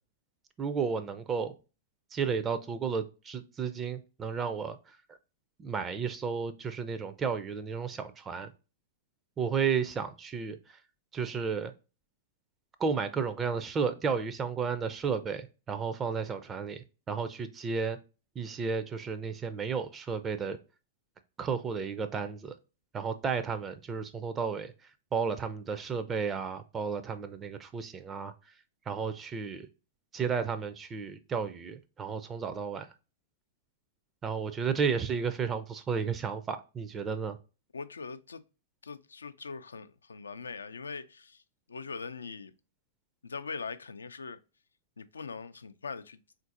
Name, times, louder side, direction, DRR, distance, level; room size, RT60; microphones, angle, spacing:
voice 1, 0.6-1.5 2.1-5.2 5.6-8.5 9.4-10.8 11.1-11.7 12.8-18.0 18.4-20.6 21.4-22.5 22.9-24.7 25.1-28.3 28.9-29.7 30.1-32.9 34.2-37.4, right 6 dB, 25° right, 0.4 m, -33 dB
voice 2, 37.7-38.4 38.8-41.4 41.7-42.5 43.2-44.4 45.0-46.2, left 5 dB, 85° left, 0.3 m, -41 dB
3.8 x 2.5 x 2.5 m
hypercardioid pair, 105°, 0 cm